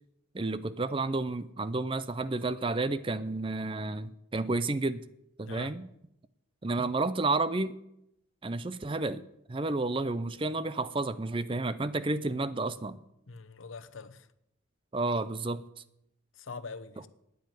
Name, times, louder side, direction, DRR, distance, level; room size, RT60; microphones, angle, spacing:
voice 1, 0.3-5.0 5.4-5.9 6.6-7.8 8.4-9.2 9.5-13.0 14.9-15.6 17.0-17.1, right 2 dB, 25° right, 0.5 m, -31 dB
voice 2, 13.3-14.2 16.5-17.1, left 4 dB, 80° left, 0.8 m, -42 dB
9.4 x 9.1 x 9.6 m
head